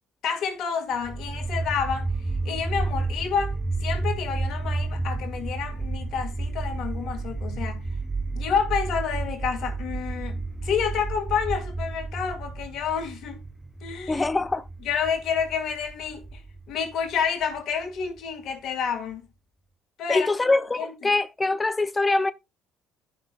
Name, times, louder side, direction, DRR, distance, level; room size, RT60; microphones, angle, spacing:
voice 1, 0.2-2.1 2.4-3.6 3.8-7.8 8.3-13.4 13.8-14.2 14.8-16.4 16.7-19.3 20.0-20.3 20.8-21.1, left 7 dB, 65° left, 2.2 m, -29 dB
sound 1, 1.0-18.0, right 3 dB, 10° right, 1.3 m, -31 dB
voice 2, 14.1-14.6 20.1-22.3, left 3 dB, 20° left, 0.3 m, -23 dB
12.5 x 5.7 x 2.5 m
hypercardioid pair, 65°, 0 cm